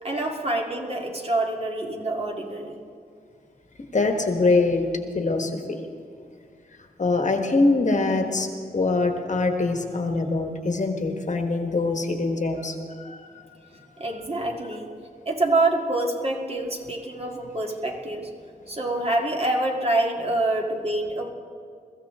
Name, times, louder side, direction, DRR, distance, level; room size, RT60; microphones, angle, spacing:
voice 1, 0.0-2.8 14.0-14.9 15.2-18.3 18.7-21.3, right 2 dB, 40° right, 0 dB, 2.0 m, -26 dB
voice 2, 3.9-4.9 5.1-5.8 7.0-13.5, left 3 dB, 50° left, 4 dB, 1.5 m, -24 dB
22.5 x 14.5 x 3.7 m, 2.3 s
wide cardioid pair, 105°, 16 cm